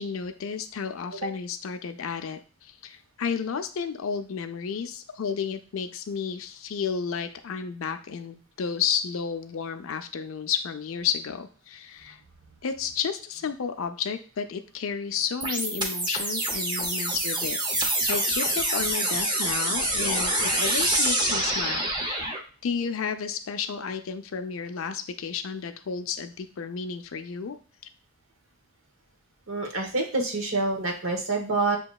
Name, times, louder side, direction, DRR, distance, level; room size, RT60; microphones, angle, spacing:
voice 1, 0.0-12.2 12.6-17.6 18.1-27.5, left 6 dB, 75° left, 8 dB, 0.5 m, -32 dB
sound 1, 15.4-22.4, right 1 dB, 20° right, 0.7 m, -26 dB
voice 2, 29.5-31.8, right 3 dB, 70° right, 2 dB, 1.1 m, -27 dB
6.9 x 2.9 x 2.3 m, 0.38 s
head